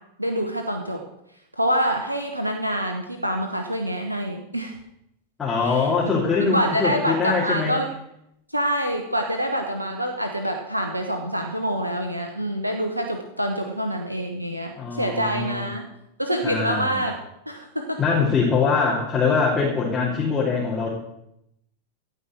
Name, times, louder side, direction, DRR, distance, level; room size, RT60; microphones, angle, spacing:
voice 1, 0.2-1.0 1.6-4.8 5.6-5.9 6.4-7.9 8.5-15.8 16.2-17.2 17.5-18.0, equal, 85° right, 4 dB, 1.1 m, -26 dB
voice 2, 5.4-7.8 14.8-15.6 16.4-17.0 18.0-20.9, left 4 dB, 15° left, -5 dB, 2.7 m, -23 dB
16.0 x 5.4 x 7.5 m, 0.81 s
figure-of-eight pair, 90°, 0 cm